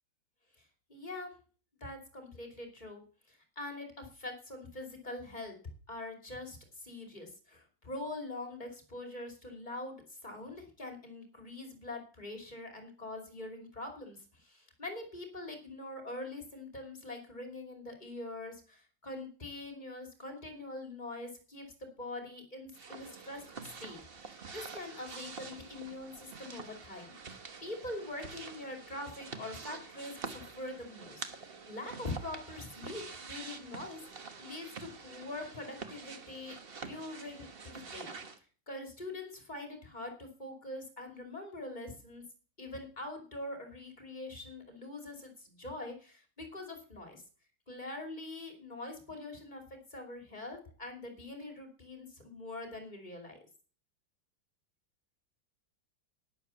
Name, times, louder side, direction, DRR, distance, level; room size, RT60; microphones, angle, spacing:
voice 1, 0.6-1.3 1.8-3.0 3.3-5.5 5.9-23.5 23.8-34.0 34.4-38.1 38.7-42.2 42.6-47.2 47.7-53.4, left 2 dB, 25° left, 4 dB, 2.8 m, -44 dB
sound 1, 22.7-38.4, right 5 dB, 35° right, 1.2 m, -47 dB
11.5 x 10.5 x 6.9 m, 0.40 s
omnidirectional pair, 2.1 m